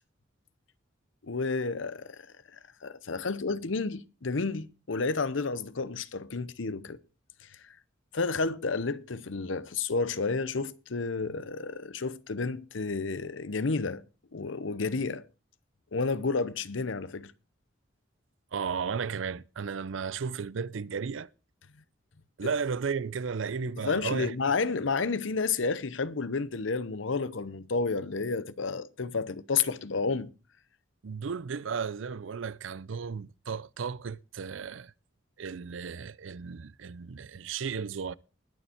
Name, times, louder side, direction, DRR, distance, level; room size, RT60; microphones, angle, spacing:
voice 1, 1.2-2.2 2.8-7.0 8.1-14.0 14.3-15.2 15.9-17.3 22.4-22.5 23.8-30.3, left 4 dB, 80° left, 0.8 m, -31 dB
voice 2, 18.5-21.3 22.4-24.3 31.0-34.9 35.4-38.2, right 6 dB, 80° right, 0.5 m, -34 dB
20.5 x 7.0 x 4.3 m
head